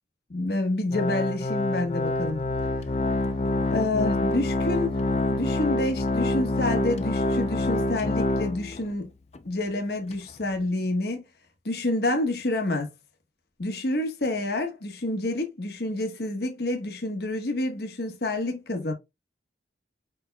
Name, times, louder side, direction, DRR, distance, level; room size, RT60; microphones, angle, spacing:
voice 1, 0.3-2.4 3.7-4.9 5.3-9.1 9.4-11.2 11.6-12.9 13.6-18.9, left 2 dB, 60° left, 1.2 m, -28 dB
Organ, 0.9-8.9 9.3-9.4 10.1-10.2, left 2 dB, 35° left, 0.4 m, -26 dB
5.3 x 4.5 x 2.2 m
head